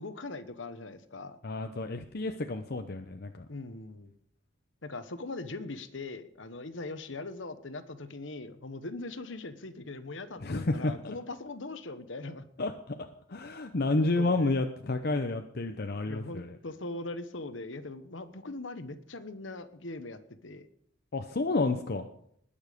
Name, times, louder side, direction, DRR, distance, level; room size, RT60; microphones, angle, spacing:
voice 1, 0.0-1.4 3.5-4.1 4.8-12.4 13.8-14.5 16.1-20.7, left 2 dB, 70° left, 11 dB, 1.2 m, -41 dB
voice 2, 1.4-3.5 10.4-11.1 12.6-13.0 13.3-16.6 21.1-22.1, left 2 dB, 50° left, 6 dB, 0.8 m, -30 dB
20.0 x 7.2 x 5.2 m, 0.67 s
head